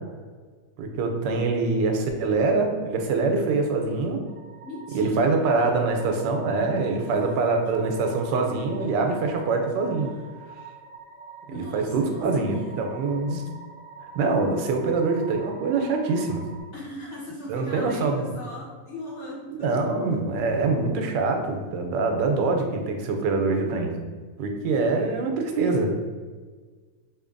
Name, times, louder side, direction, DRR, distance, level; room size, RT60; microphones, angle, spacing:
voice 1, 0.8-4.2 4.9-10.1 11.5-13.4 14.1-16.4 17.5-18.4 19.6-23.9 24.4-25.9, right 3 dB, 90° right, 3 dB, 1.3 m, -24 dB
sound 1, 4.2-16.6, right 5 dB, 70° left, 1.9 m, -45 dB
voice 2, 4.6-5.3 7.0-7.8 10.0-10.2 11.5-12.8 16.7-19.7, left 1 dB, 50° left, -6 dB, 0.9 m, -40 dB
4.3 x 2.8 x 2.5 m, 1.5 s
omnidirectional pair, 1.9 m